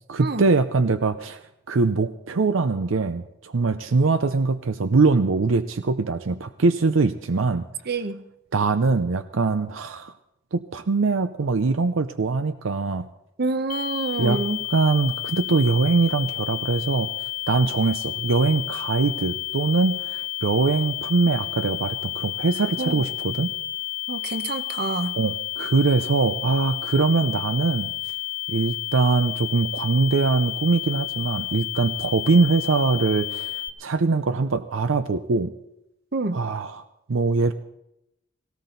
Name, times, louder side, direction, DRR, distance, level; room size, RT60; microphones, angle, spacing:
voice 1, 0.1-7.7 8.5-10.1 10.5-13.1 14.2-14.4 14.7-17.1 17.5-23.5 25.2-27.9 28.5-33.5 33.8-35.5 36.3-36.8 37.1-37.5, right 4 dB, 85° right, 11 dB, 0.6 m, -22 dB
voice 2, 7.9-8.2 13.4-14.6 22.8-23.0 24.1-25.2 36.1-36.4, right 3 dB, 55° right, 11 dB, 0.9 m, -27 dB
sound 1, 13.7-33.7, left 17 dB, 45° left, 0.7 m, -31 dB
17.5 x 17.5 x 3.9 m, 0.84 s
head